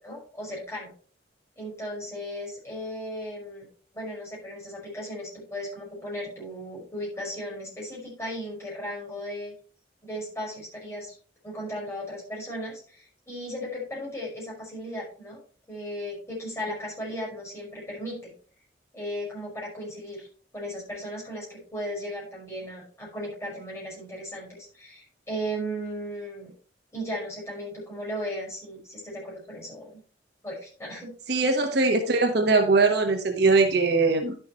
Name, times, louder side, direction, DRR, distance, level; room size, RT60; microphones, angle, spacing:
voice 1, 0.0-0.9 1.6-3.7 3.9-9.5 10.0-11.2 11.4-15.4 15.7-18.3 18.9-20.3 20.5-26.5 26.9-30.0 30.4-31.1, equal, 15° left, -5 dB, 5.3 m, -36 dB
voice 2, 31.3-34.4, right 3 dB, 65° right, 4 dB, 1.3 m, -21 dB
11.0 x 6.8 x 3.1 m, 0.40 s
head